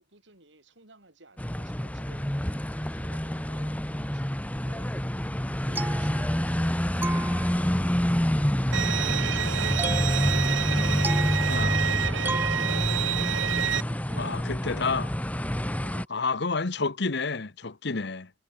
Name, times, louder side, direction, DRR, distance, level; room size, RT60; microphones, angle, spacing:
voice 1, 0.0-2.3 2.9-4.3 4.6-4.9 13.6-16.8, right 2 dB, 65° right, 6.5 m, -54 dB
sound 1, 1.4-16.0, equal, 10° left, 1.2 m, -27 dB
sound 2, 5.5-6.7 7.0-7.9 9.8-13.2, right 3 dB, 10° right, 0.5 m, -36 dB
Bowed string instrument, 8.7-13.8, right 9 dB, 80° right, 1.0 m, -29 dB
voice 2, 11.5-11.8 14.2-15.1 16.1-18.3, left 4 dB, 60° left, 1.2 m, -29 dB
head